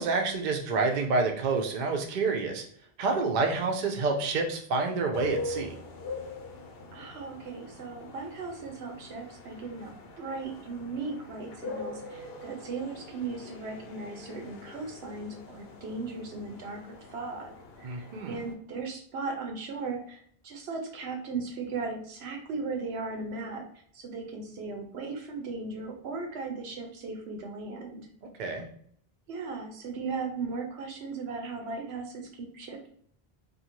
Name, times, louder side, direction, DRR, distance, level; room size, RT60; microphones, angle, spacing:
voice 1, 0.0-2.6 3.0-5.8 17.8-18.4 28.4-28.7, right 4 dB, 55° right, 2 dB, 0.6 m, -28 dB
sound 1, 5.1-18.5, left 2 dB, 75° left, 0.8 m, -43 dB
voice 2, 6.9-23.6 23.9-28.1 29.3-32.9, right 4 dB, 85° right, 3 dB, 0.9 m, -37 dB
2.5 x 2.4 x 2.9 m, 0.63 s
omnidirectional pair, 1.0 m